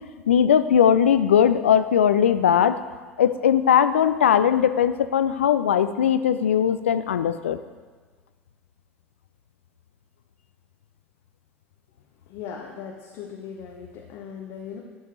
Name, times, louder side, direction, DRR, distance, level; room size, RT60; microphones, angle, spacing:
voice 1, 0.3-2.8 3.2-7.6, left 9 dB, 70° left, 12 dB, 0.4 m, -19 dB
voice 2, 12.3-14.8, left 7 dB, 50° left, 0 dB, 0.9 m, -38 dB
11.5 x 5.1 x 4.1 m, 1.5 s
figure-of-eight pair, 70°, 7 cm